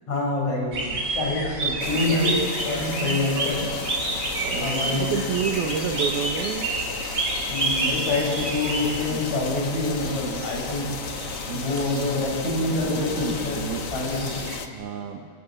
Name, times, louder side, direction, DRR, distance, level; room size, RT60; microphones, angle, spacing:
voice 1, 0.1-2.3 2.6-3.7 4.6-5.2 7.5-10.9 11.5-13.6 13.9-14.5, left 2 dB, 40° left, -1 dB, 8.2 m, -26 dB
sound 1, 0.7-14.6, right 2 dB, 20° right, 3.9 m, -30 dB
sound 2, 1.8-14.7, left 6 dB, 65° left, 1.4 m, -35 dB
voice 2, 2.1-3.3 4.4-6.7 7.8-8.0 9.1-9.2 10.2-10.5 11.5-11.9 12.7-13.9 14.7-15.3, right 7 dB, 70° right, 4 dB, 3.0 m, -30 dB
Piano, 3.4-5.3, left 2 dB, 5° right, 4.5 m, -40 dB
28.5 x 25.5 x 7.8 m, 2.1 s
omnidirectional pair, 4.8 m